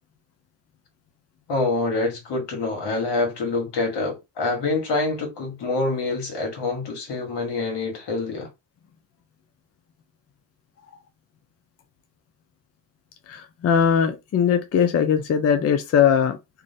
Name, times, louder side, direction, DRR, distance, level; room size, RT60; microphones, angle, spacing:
voice 1, 1.5-8.5, left 3 dB, 65° left, 1.3 m, -26 dB
voice 2, 13.3-16.4, left 7 dB, 35° left, 0.5 m, -20 dB
2.5 x 2.1 x 2.6 m
supercardioid pair, 60°, 43 cm